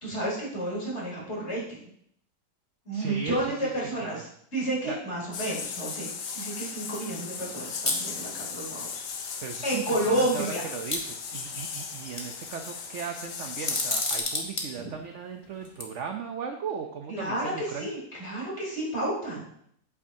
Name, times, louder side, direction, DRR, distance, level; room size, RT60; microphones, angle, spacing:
voice 1, 0.0-1.8 2.9-4.3 4.5-6.1 6.3-9.1 9.6-10.7 17.1-19.5, right 1 dB, 40° left, -5 dB, 3.6 m, -31 dB
voice 2, 2.9-3.7 4.0-4.2 4.8-5.0 9.4-17.9, right 6 dB, 65° right, 4 dB, 0.7 m, -37 dB
sound 1, 5.3-14.2, left 6 dB, 80° left, 1.5 m, -37 dB
sound 2, 7.9-8.1 9.2-9.3 9.7-9.8 10.9-11.7 12.1-12.6 13.6-14.7 15.6-15.8, left 2 dB, 20° left, 1.0 m, -29 dB
8.4 x 8.2 x 2.7 m, 0.69 s
omnidirectional pair, 1.8 m